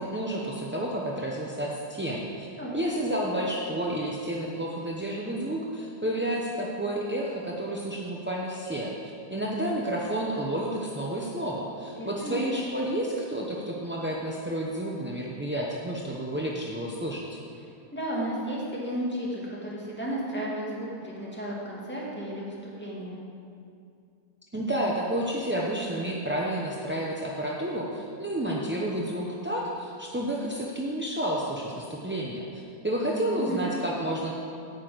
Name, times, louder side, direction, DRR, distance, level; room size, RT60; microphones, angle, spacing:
voice 1, 0.0-2.5 2.7-8.9 9.3-17.3 24.5-34.3, right 1 dB, 15° right, -3 dB, 0.4 m, -30 dB
voice 2, 12.0-12.6 17.9-23.1 33.1-33.6, right 1 dB, 5° left, -6 dB, 2.1 m, -33 dB
8.8 x 6.5 x 7.9 m, 2.4 s
omnidirectional pair, 1.7 m